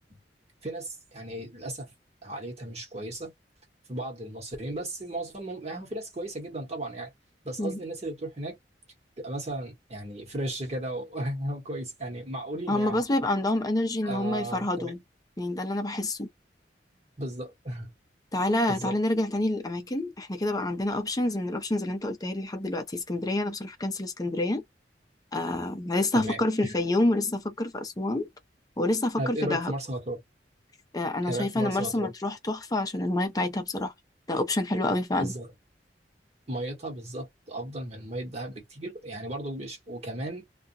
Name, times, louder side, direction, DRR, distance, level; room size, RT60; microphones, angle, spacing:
voice 1, 0.6-1.9 2.2-3.3 3.9-7.1 7.4-8.6 9.2-13.0 14.1-14.9 17.2-17.9 18.7-19.0 26.1-26.7 29.2-30.2 31.2-32.1 35.2-35.5 36.5-40.5, right 1 dB, 40° right, 1.1 m, -35 dB
voice 2, 12.7-15.0 15.4-16.3 18.3-24.6 25.3-28.3 28.8-29.7 30.9-33.9 34.3-35.3, left 1 dB, 20° left, 0.6 m, -28 dB
2.4 x 2.2 x 2.6 m
head